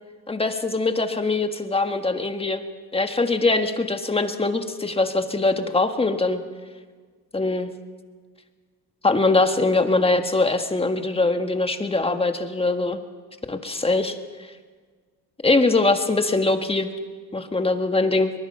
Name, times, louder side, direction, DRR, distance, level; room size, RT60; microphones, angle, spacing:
voice 1, 0.3-2.6 2.9-6.4 7.3-7.7 9.0-13.0 13.5-14.2 15.4-16.9 17.3-18.3, left 3 dB, 15° left, 7 dB, 1.6 m, -22 dB
23.0 x 21.0 x 5.6 m, 1.5 s
cardioid pair, 110°, 35 cm